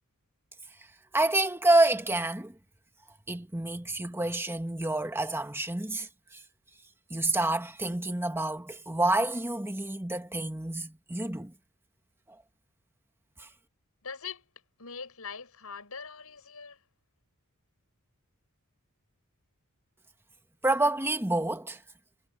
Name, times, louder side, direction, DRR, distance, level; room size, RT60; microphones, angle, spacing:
voice 1, 1.1-2.5 3.3-6.1 7.1-11.5 13.4-13.5 20.6-21.8, right 2 dB, 10° right, 1.4 m, -28 dB
voice 2, 14.0-14.5 14.8-16.8, left 6 dB, 75° left, 7.0 m, -42 dB
head